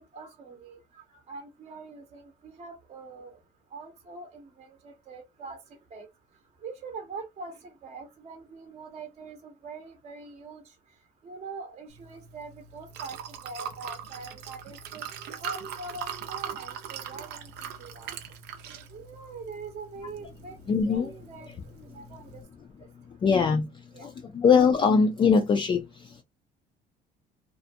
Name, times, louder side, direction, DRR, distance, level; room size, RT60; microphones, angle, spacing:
voice 1, 0.1-0.8 1.3-3.4 3.7-5.6 5.9-6.1 6.6-10.6 11.2-15.0 15.4-18.1 18.9-20.5 20.9-21.5 21.8-22.4 23.9-24.1, right 4 dB, 40° right, 0.7 m, -43 dB
Liquid, 11.9-22.4, right 8 dB, 75° right, 0.6 m, -41 dB
voice 2, 20.7-21.1 23.2-26.2, left 5 dB, 30° left, 0.4 m, -22 dB
2.4 x 2.1 x 2.5 m
cardioid pair, 110°, 17 cm